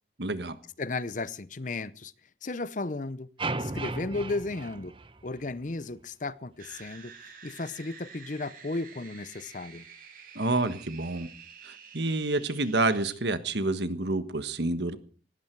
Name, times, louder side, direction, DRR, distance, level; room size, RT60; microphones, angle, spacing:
voice 1, 0.2-0.6 10.3-11.3 11.6-15.0, right 2 dB, 65° right, 1.5 m, -28 dB
voice 2, 0.8-2.1 2.4-3.3 3.6-4.9 5.2-7.1 7.4-9.8, left 3 dB, 45° left, 0.7 m, -34 dB
sound 1, 3.4-5.7, right 3 dB, 30° right, 0.9 m, -35 dB
sound 2, 6.6-13.1, right 6 dB, 50° right, 6.1 m, -49 dB
18.0 x 16.0 x 4.7 m
head